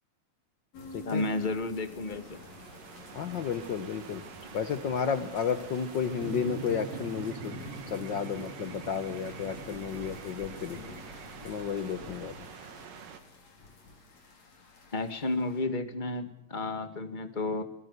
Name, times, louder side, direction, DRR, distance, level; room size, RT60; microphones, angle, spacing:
sound 1, 0.7-15.7, left 3 dB, 50° left, 5.4 m, -49 dB
voice 1, 1.0-2.4 14.9-17.6, left 2 dB, 20° left, 9 dB, 1.4 m, -32 dB
sound 2, 1.7-13.2, right 7 dB, 75° right, 3.7 m, -48 dB
voice 2, 3.1-4.2 4.5-7.6 7.9-10.8 11.4-12.4, left 7 dB, 75° left, 10 dB, 1.0 m, -32 dB
sound 3, 6.1-12.7, right 2 dB, 60° right, 8.2 m, -43 dB
28.5 x 21.0 x 8.2 m, 0.64 s
omnidirectional pair, 3.9 m